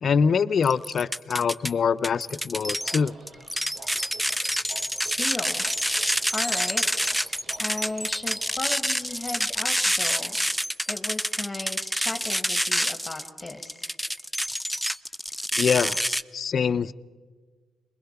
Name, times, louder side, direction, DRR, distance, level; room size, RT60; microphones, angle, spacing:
voice 1, 0.0-3.1 15.6-16.0 16.3-16.9, left 6 dB, 50° left, 15 dB, 0.6 m, -24 dB
sound 1, 0.6-1.7 2.0-16.2, equal, ahead, 0.5 m, -27 dB
sound 2, 2.6-10.1, right 3 dB, 55° right, 3.3 m, -50 dB
voice 2, 5.2-5.7 6.3-6.8 7.6-10.4 10.9-13.9, left 2 dB, 20° left, 5 dB, 1.5 m, -35 dB
22.0 x 21.0 x 5.8 m, 1.4 s
cardioid pair, 90°, 0 cm